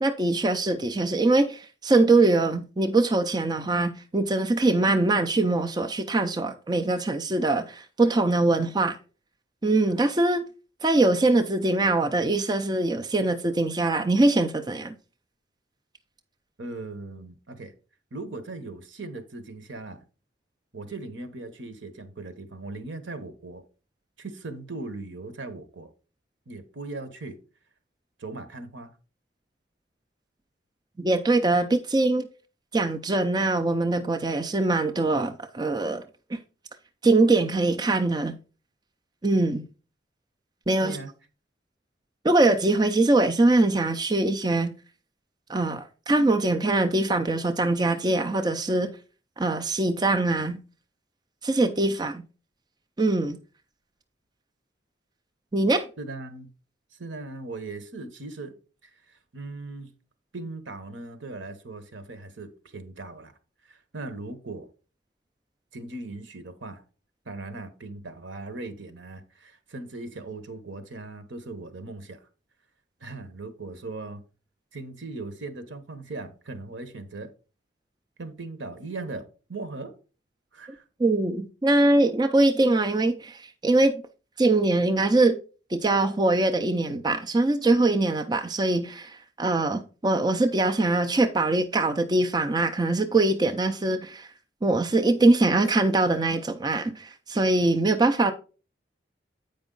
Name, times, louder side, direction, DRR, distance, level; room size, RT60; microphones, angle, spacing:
voice 1, 0.0-9.0 9.6-10.4 10.8-14.9 31.0-32.3 32.7-36.0 36.3-36.4 37.0-38.4 39.2-39.6 40.7-41.0 42.2-44.7 45.5-48.9 49.4-50.6 51.4-52.2 53.0-53.4 55.5-55.9 81.0-84.0 84.4-85.4 85.7-94.3 94.6-98.3, right 2 dB, 20° right, 0.5 m, -23 dB
voice 2, 16.6-17.7 18.1-20.0 20.7-23.6 24.2-25.9 26.5-27.4 28.2-28.9 40.8-41.1 56.0-56.5 57.0-58.5 58.8-59.9 60.3-63.3 63.6-64.7 65.7-66.8 67.2-72.2 73.0-74.2 74.7-77.3 78.2-79.9 80.5-80.8, right 2 dB, 85° right, 1.1 m, -39 dB
8.1 x 5.2 x 3.8 m
head